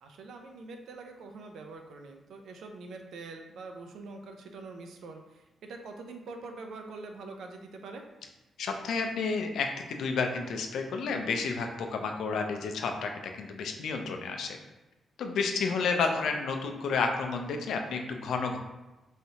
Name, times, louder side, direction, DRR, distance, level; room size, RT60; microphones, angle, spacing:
voice 1, 0.0-8.1 15.8-16.3, right 3 dB, 80° right, 4 dB, 0.4 m, -44 dB
voice 2, 8.6-14.6 15.2-18.6, left 4 dB, 80° left, 4 dB, 0.4 m, -31 dB
3.2 x 2.8 x 2.7 m, 1.1 s
cardioid pair, 115°, 0 cm